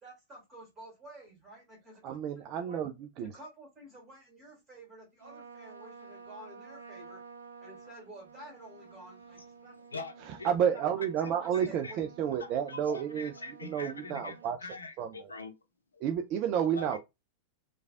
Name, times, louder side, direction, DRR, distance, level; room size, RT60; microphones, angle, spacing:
voice 1, 0.0-2.8 3.2-7.2 7.6-9.8 10.7-12.4, right 1 dB, 20° right, 1.8 m, -51 dB
voice 2, 2.0-2.9 3.2-3.3 10.4-13.3 13.6-14.6 15.0-15.3 16.0-17.0, right 8 dB, 40° right, 0.3 m, -30 dB
Trumpet, 5.2-14.5, right 5 dB, 80° right, 0.6 m, -52 dB
voice 3, 9.7-10.5 11.5-12.0 12.7-15.5 15.9-16.0 16.7-17.0, left 3 dB, 75° left, 0.5 m, -43 dB
3.1 x 2.3 x 2.3 m
figure-of-eight pair, 90°, 0 cm